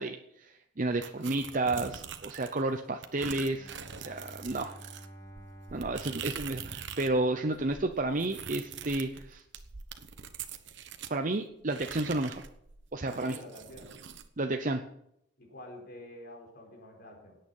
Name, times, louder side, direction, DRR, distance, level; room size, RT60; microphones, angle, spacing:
voice 1, 0.0-4.8 5.7-9.4 11.1-12.4 12.9-13.4 14.4-14.8, right 2 dB, 40° right, 6 dB, 0.7 m, -31 dB
sound 1, 1.0-2.6 3.0-7.2 7.5-11.2 11.7-14.3, right 7 dB, 60° right, 1.1 m, -44 dB
Bowed string instrument, 3.4-7.7, right 1 dB, 20° left, 2.1 m, -51 dB
voice 2, 13.0-13.9 15.4-17.4, left 1 dB, 50° left, 0 dB, 4.6 m, -48 dB
17.5 x 9.2 x 5.5 m, 0.76 s
head